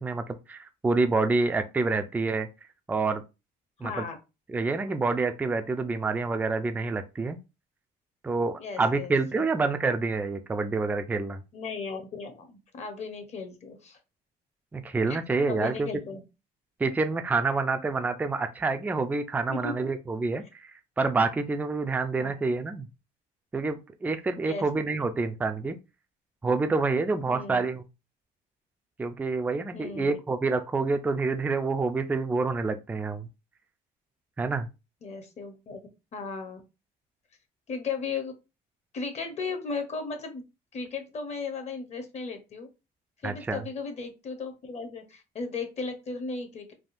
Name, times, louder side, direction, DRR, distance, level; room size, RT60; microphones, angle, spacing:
voice 1, 0.0-2.5 2.9-3.2 3.8-4.0 4.5-7.4 8.2-11.4 14.7-15.9 16.8-20.7 21.0-22.9 23.5-25.8 26.4-27.8 29.0-33.3 34.4-34.7 43.2-43.6, right 3 dB, 10° right, 0.3 m, -27 dB
voice 2, 3.8-4.2 8.6-9.5 11.5-14.0 15.1-15.2 15.5-16.2 19.5-19.8 22.1-22.3 24.4-24.7 27.3-27.7 29.7-30.2 35.0-35.8 36.1-36.6 37.7-38.3 38.9-40.4 40.7-42.7 43.2-46.7, left 4 dB, 40° left, 0.8 m, -36 dB
3.4 x 2.2 x 2.5 m
cardioid pair, 110°, 17 cm